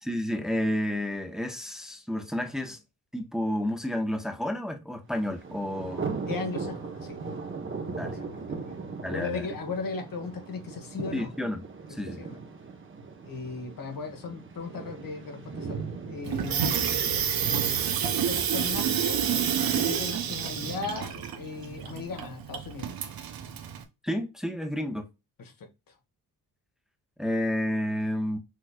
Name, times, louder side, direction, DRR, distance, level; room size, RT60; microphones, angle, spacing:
voice 1, 0.0-2.8 3.1-6.1 7.9-8.2 9.0-9.5 11.1-12.2 17.0-17.1 24.0-25.1 27.2-28.4, left 1 dB, ahead, 1.1 m, -31 dB
Thunder, 5.1-22.1, right 4 dB, 35° right, 1.2 m, -39 dB
voice 2, 6.3-7.2 7.9-8.6 9.1-11.3 11.9-12.4 13.2-16.8 18.0-19.2 19.7-22.9 25.4-25.7, left 4 dB, 65° left, 1.7 m, -37 dB
Water tap faucet / Sink (filling or washing), 16.2-23.8, right 8 dB, 70° right, 1.0 m, -29 dB
6.5 x 3.1 x 2.4 m
cardioid pair, 75°, 37 cm